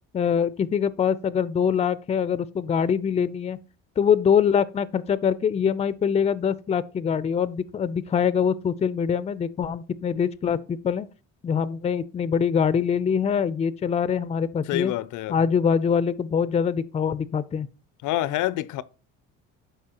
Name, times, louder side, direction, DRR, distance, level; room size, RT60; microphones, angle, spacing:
voice 1, 0.1-3.6 4.0-11.1 11.4-14.9 15.3-17.7, left 7 dB, 20° left, 0.4 m, -24 dB
voice 2, 14.7-15.4 18.0-18.8, left 14 dB, 70° left, 0.5 m, -27 dB
11.5 x 4.5 x 2.9 m
cardioid pair, 95°, 31 cm